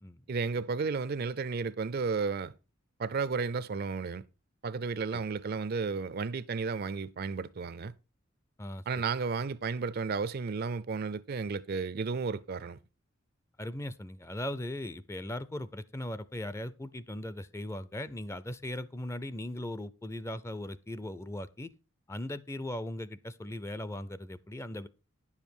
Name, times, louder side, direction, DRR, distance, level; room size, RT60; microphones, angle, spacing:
voice 1, 0.3-2.5 3.0-4.2 4.6-7.9 8.9-12.8, right 4 dB, 50° right, 0.5 m, -33 dB
voice 2, 13.6-21.7 22.1-24.9, left 1 dB, 15° left, 0.5 m, -38 dB
10.5 x 7.3 x 4.5 m
head